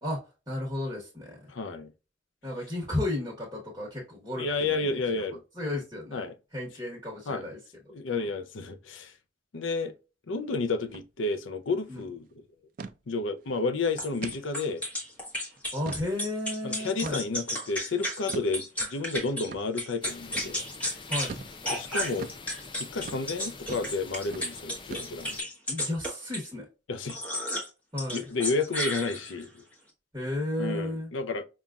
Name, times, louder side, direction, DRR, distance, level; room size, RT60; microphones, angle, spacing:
voice 1, 0.0-1.5 2.4-5.2 5.5-6.3 6.5-7.6 8.1-8.3 11.9-12.1 15.7-17.2 21.1-21.4 25.7-26.7 27.9-28.2 30.1-31.1, left 1 dB, 20° right, 1.2 m, -33 dB
voice 2, 1.5-1.9 4.4-5.4 6.1-6.3 7.3-7.5 7.9-9.1 9.5-9.9 10.3-12.4 13.1-14.8 16.6-20.6 21.7-22.3 22.9-25.5 26.9-27.2 28.1-29.6 30.6-31.4, left 3 dB, 80° left, 0.6 m, -31 dB
sound 1, 10.8-11.1 11.4-11.5 11.8-12.1 12.8-13.0 13.5-13.6 14.2-14.4 14.9-15.0 15.6-16.1 17.0-17.4 18.3-18.5 19.5-19.6 20.4-20.6 21.3-21.5 22.2-22.4 23.0-23.2 23.7-24.0 24.3-24.5 24.9-25.4, right 4 dB, 45° right, 0.3 m, -41 dB
sound 2, 14.0-19.5 19.8-21.3 21.6-26.5 27.1-27.7 28.0-29.4, equal, 5° left, 1.1 m, -33 dB
sound 3, 20.0-25.4, left 4 dB, 25° left, 0.4 m, -46 dB
5.5 x 2.4 x 2.4 m
head